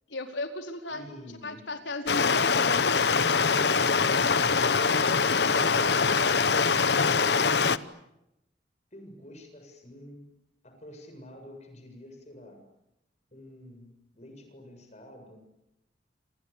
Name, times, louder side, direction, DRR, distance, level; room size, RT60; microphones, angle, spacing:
voice 1, 0.1-1.0 1.4-3.0, left 2 dB, 85° left, 4 dB, 4.5 m, -36 dB
voice 2, 0.9-1.6 3.8-4.3 5.0-6.4 7.0-7.9 8.9-10.3 10.6-12.6 13.3-15.4, left 1 dB, 40° left, 5 dB, 7.4 m, -46 dB
Stream, 2.1-7.8, left 5 dB, 65° left, 1.0 m, -23 dB
28.5 x 28.5 x 7.1 m, 0.86 s
head